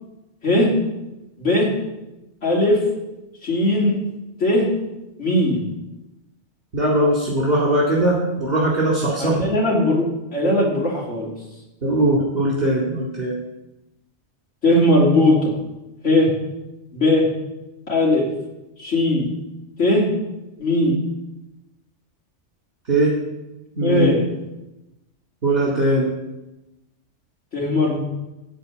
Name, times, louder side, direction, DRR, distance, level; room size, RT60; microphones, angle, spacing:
voice 1, 1.4-1.7 2.4-2.8 3.4-4.0 4.4-4.7 5.2-5.6 9.2-10.1 10.3-11.3 14.6-15.5 16.0-16.3 16.9-17.3 17.9-18.3 18.8-19.3 19.8-20.1 20.6-21.0 23.8-24.3 27.5-28.0, left 1 dB, 90° left, -2 dB, 3.0 m, -18 dB
voice 2, 6.7-9.4 11.8-13.4 22.9-23.1 23.8-24.1 25.4-26.1, right 1 dB, 55° right, -5 dB, 2.5 m, -20 dB
13.5 x 4.4 x 8.6 m, 0.99 s
omnidirectional pair, 1.2 m